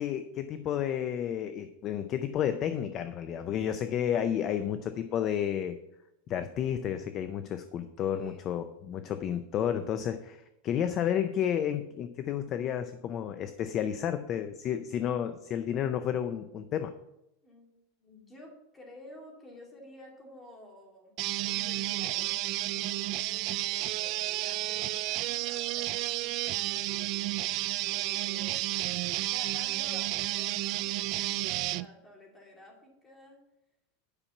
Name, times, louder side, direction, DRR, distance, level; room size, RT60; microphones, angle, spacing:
voice 1, 0.0-5.8 6.3-16.9, left 9 dB, 30° left, 10 dB, 0.5 m, -31 dB
voice 2, 8.0-8.6 17.4-17.7 18.0-21.2 21.4-28.7 29.3-33.4, left 2 dB, 15° left, -1 dB, 2.6 m, -52 dB
sound 1, 21.2-31.8, right 19 dB, 45° right, 0.3 m, -31 dB
10.0 x 5.7 x 5.9 m, 0.89 s
supercardioid pair, 160°, 0 cm